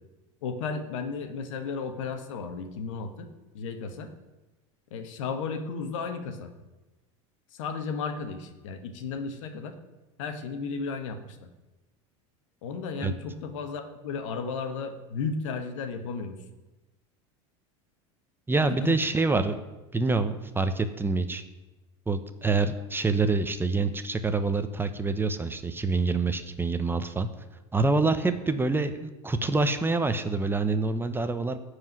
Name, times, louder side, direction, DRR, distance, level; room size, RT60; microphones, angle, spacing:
voice 1, 0.4-3.3 3.5-4.1 4.9-6.5 7.5-9.7 10.2-11.4 12.6-16.4 18.7-19.0, left 5 dB, 80° left, 7 dB, 1.5 m, -34 dB
voice 2, 18.5-19.6 19.9-21.4 22.1-27.3 27.7-31.6, right 3 dB, 15° right, 9 dB, 0.9 m, -26 dB
15.0 x 5.0 x 9.5 m, 1.1 s
supercardioid pair, 105°, 16 cm